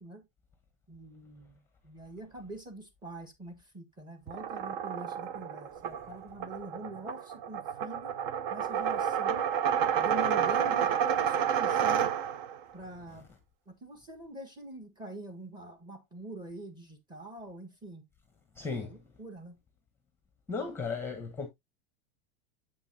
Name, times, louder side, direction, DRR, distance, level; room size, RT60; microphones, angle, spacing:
voice 1, 0.9-8.2 8.5-9.5 9.9-12.2 12.7-13.3 13.7-18.1 18.6-19.6, right 1 dB, 15° right, 1.4 m, -44 dB
sound 1, 4.3-12.6, right 8 dB, 55° right, 0.7 m, -30 dB
voice 2, 18.6-18.9 20.5-21.5, left 4 dB, 5° left, 0.9 m, -35 dB
7.5 x 5.4 x 2.7 m
supercardioid pair, 145°, 33 cm